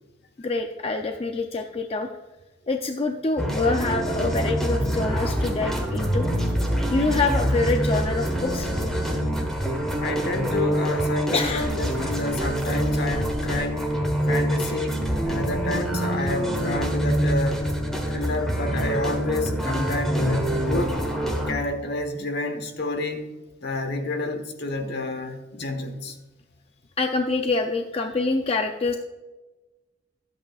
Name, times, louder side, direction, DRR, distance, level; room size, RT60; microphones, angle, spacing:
voice 1, 0.4-2.1 2.7-6.3 6.9-8.7 11.3-11.7 27.0-29.0, left 3 dB, 30° left, 0.5 m, -25 dB
sound 1, 3.4-21.5, equal, ahead, 1.3 m, -25 dB
voice 2, 10.0-14.0 14.3-17.7 18.1-21.0 21.5-23.3 23.6-26.2, left 2 dB, 60° left, 1.2 m, -29 dB
13.0 x 8.3 x 2.4 m
head